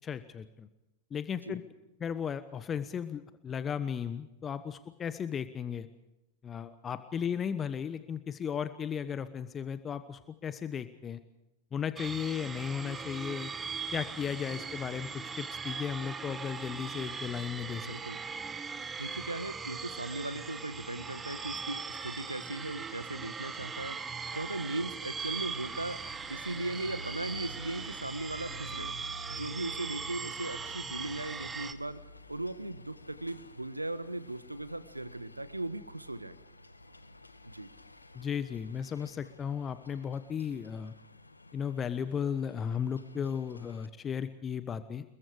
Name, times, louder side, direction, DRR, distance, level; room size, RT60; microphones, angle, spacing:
voice 1, 0.0-0.7 1.1-1.6 2.0-5.9 6.4-11.2 11.7-13.5 13.9-15.1 15.4-17.9 38.1-40.9 41.5-45.0, left 7 dB, 25° left, 13 dB, 1.2 m, -35 dB
sound 1, 12.0-31.7, right 5 dB, 15° right, 1.5 m, -40 dB
voice 2, 17.8-18.2 19.0-26.0 26.3-29.0 29.3-32.0 32.3-36.4 37.4-37.7, right 2 dB, 85° right, 15 dB, 1.3 m, -38 dB
sound 2, 25.3-43.9, equal, 80° left, 1.5 m, -52 dB
28.0 x 22.0 x 5.0 m, 0.93 s
figure-of-eight pair, 90°, 0 cm